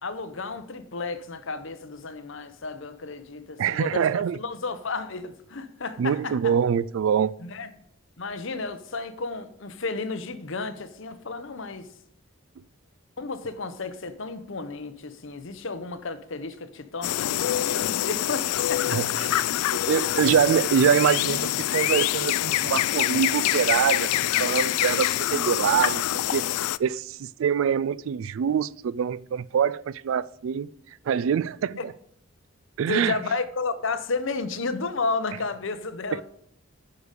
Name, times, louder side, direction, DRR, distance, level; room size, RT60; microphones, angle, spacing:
voice 1, 0.0-6.6 7.4-7.7 8.2-11.9 13.2-19.2 32.9-36.2, left 4 dB, 60° left, 0.8 m, -32 dB
voice 2, 3.6-4.4 6.0-7.3 18.9-19.3 19.7-26.4 26.8-30.7 31.1-31.9 32.8-33.2 36.1-36.2, right 7 dB, 65° right, 0.3 m, -24 dB
sound 1, 17.0-26.8, left 13 dB, 90° left, 0.3 m, -25 dB
9.5 x 5.2 x 6.5 m
head